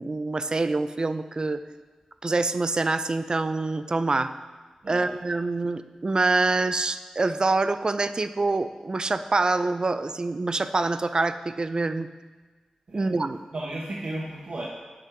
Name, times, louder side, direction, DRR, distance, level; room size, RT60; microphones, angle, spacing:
voice 1, 0.0-1.6 2.2-4.3 4.9-12.1 12.9-13.4, right 3 dB, 40° right, 11 dB, 0.4 m, -25 dB
voice 2, 13.5-14.7, right 1 dB, 60° right, -3 dB, 1.1 m, -34 dB
8.5 x 5.9 x 5.9 m, 1.3 s
wide cardioid pair, 100°, 2 cm